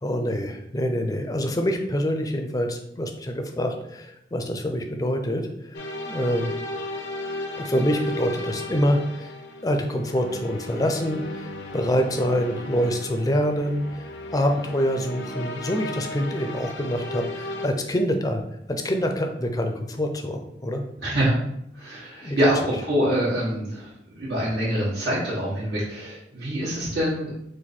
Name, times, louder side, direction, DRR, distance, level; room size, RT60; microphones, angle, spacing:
voice 1, 0.0-5.7 6.1-6.5 7.6-9.3 9.6-14.0 14.3-18.4 18.7-20.8 22.2-22.4, equal, 20° left, 5 dB, 0.4 m, -26 dB
sound 1, 5.7-17.7, left 2 dB, 85° left, 0.5 m, -35 dB
voice 2, 21.0-21.3 21.7-23.9 24.2-27.3, equal, 80° right, -11 dB, 1.3 m, -25 dB
4.2 x 2.6 x 4.2 m, 0.77 s
head